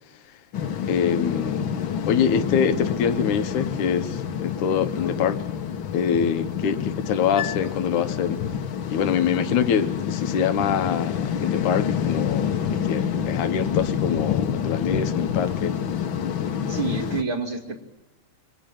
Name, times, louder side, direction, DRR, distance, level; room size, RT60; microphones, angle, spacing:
sound 1, 0.5-17.2, left 8 dB, 55° left, 1.4 m, -27 dB
voice 1, 0.9-1.7 2.1-5.4 5.9-8.4 8.9-15.7, left 7 dB, 90° left, 2.7 m, -25 dB
voice 2, 16.7-17.8, right 4 dB, 45° right, 3.2 m, -28 dB
26.0 x 23.5 x 9.0 m
omnidirectional pair, 3.4 m